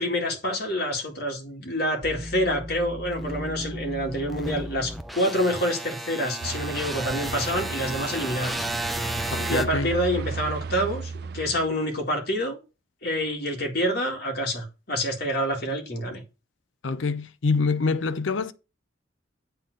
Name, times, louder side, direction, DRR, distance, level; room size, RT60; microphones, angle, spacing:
voice 1, 0.0-8.6 9.2-12.6 13.0-16.2, equal, 55° left, 2.2 m, -27 dB
sound 1, 2.0-9.7, right 1 dB, ahead, 0.6 m, -33 dB
sound 2, 6.4-11.7, right 5 dB, 55° right, 0.4 m, -35 dB
voice 2, 9.3-9.9 16.8-18.5, left 4 dB, 85° left, 0.6 m, -25 dB
8.8 x 3.8 x 6.5 m
head